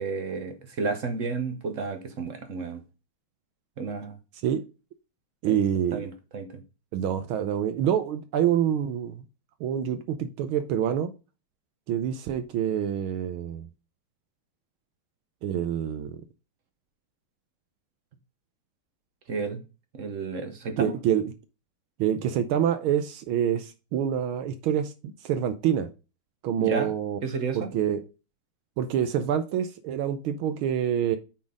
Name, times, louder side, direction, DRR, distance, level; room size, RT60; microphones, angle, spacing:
voice 1, 0.0-2.8 3.8-4.2 5.5-5.6 5.9-6.5 19.3-19.6 19.9-21.0 26.6-26.9 27.2-27.7, right 4 dB, 55° right, 0.9 m, -31 dB
voice 2, 5.4-6.1 6.9-9.2 9.6-11.1 11.9-13.7 15.4-16.2 20.8-21.3 22.0-25.9 26.4-27.2 27.5-28.0 28.8-31.2, right 9 dB, 75° right, 1.5 m, -26 dB
8.5 x 3.9 x 3.6 m
omnidirectional pair, 2.4 m